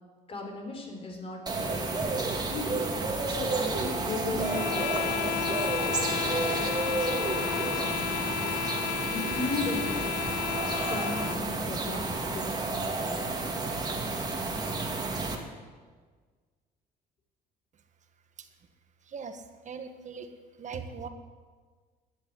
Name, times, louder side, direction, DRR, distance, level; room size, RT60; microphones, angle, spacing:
voice 1, 0.3-2.8 3.3-8.6 9.0-10.2 10.8-13.4, left 2 dB, 35° left, 2 dB, 4.0 m, -38 dB
sound 1, 1.5-15.4, right 3 dB, 25° right, 2.3 m, -31 dB
sound 2, 4.4-11.5, left 15 dB, 70° left, 0.4 m, -33 dB
voice 2, 19.0-20.3 20.6-21.1, right 5 dB, 45° right, 7 dB, 1.6 m, -40 dB
11.5 x 10.0 x 9.9 m, 1.5 s
cardioid pair, 110°, 17 cm